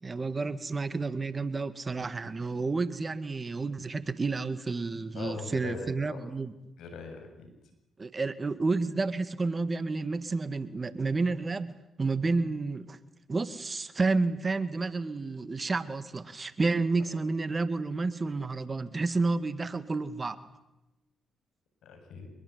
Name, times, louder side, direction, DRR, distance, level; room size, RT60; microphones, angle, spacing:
voice 1, 0.0-6.5 8.0-13.0 13.3-20.4, right 3 dB, 35° right, 13 dB, 2.0 m, -30 dB
voice 2, 5.1-6.3 6.8-7.5 17.1-17.2 21.8-22.3, left 4 dB, 75° left, 6 dB, 7.2 m, -41 dB
25.5 x 21.5 x 9.6 m, 0.95 s
hypercardioid pair, 50°, 0 cm